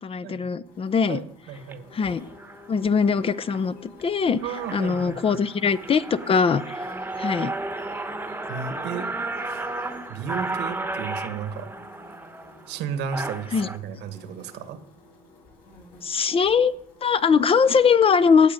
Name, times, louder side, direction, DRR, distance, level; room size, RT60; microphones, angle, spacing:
voice 1, 0.0-1.2 1.9-2.2 2.7-4.4 4.7-6.6 7.2-7.5 13.5-13.7 16.0-16.7 17.0-18.5, left 6 dB, 35° left, 16 dB, 0.6 m, -21 dB
sound 1, 0.6-18.0, left 2 dB, 65° left, 6.1 m, -50 dB
voice 2, 1.1-1.8 4.4-5.4 8.5-9.1 9.5-9.6 10.1-11.7 12.7-14.8, right 7 dB, 85° right, 10 dB, 1.3 m, -34 dB
sound 2, 1.6-1.7 2.4-2.6 3.1-3.6 4.0-4.1 4.3-13.8, right 2 dB, 10° right, 1.1 m, -33 dB
16.5 x 8.4 x 5.2 m, 0.71 s
cardioid pair, 110°, 17 cm